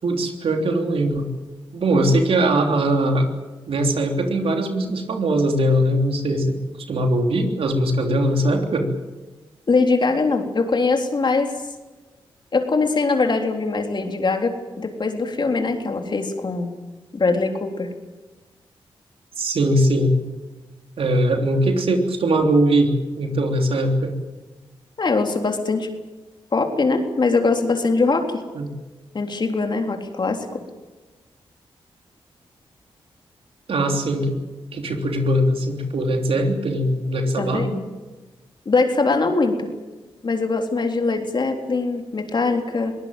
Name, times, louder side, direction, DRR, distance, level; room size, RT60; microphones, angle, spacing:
voice 1, 0.0-1.3 1.7-3.3 3.7-6.6 6.9-8.9 19.4-20.1 21.0-24.1 28.5-28.7 33.7-34.3 34.7-37.8, right 1 dB, 75° right, 4 dB, 3.4 m, -21 dB
voice 2, 9.7-11.5 12.5-16.7 17.1-17.9 25.0-25.9 26.5-28.4 29.1-30.6 37.4-37.8 38.7-39.7 40.2-43.0, left 3 dB, 50° left, 4 dB, 3.5 m, -22 dB
22.0 x 18.5 x 9.1 m, 1.2 s
cardioid pair, 60°, 10 cm